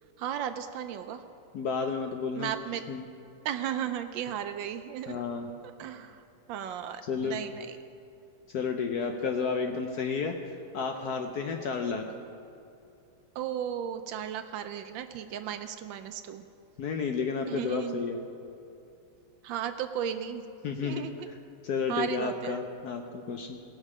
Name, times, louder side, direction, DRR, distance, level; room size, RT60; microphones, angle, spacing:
voice 1, 0.2-1.2 2.4-2.8 3.4-5.3 5.8-6.2 6.5-7.8 13.3-16.4 17.5-18.0 19.4-20.4 20.8-21.4 21.9-22.6, right 9 dB, 75° right, 9 dB, 1.3 m, -35 dB
voice 2, 1.5-2.6 2.9-3.0 5.1-5.5 7.1-7.4 8.5-10.3 10.7-12.0 16.8-18.2 20.6-21.1 21.6-23.6, left 5 dB, 70° left, 4 dB, 1.0 m, -31 dB
18.5 x 6.4 x 4.9 m, 2.6 s
omnidirectional pair, 2.2 m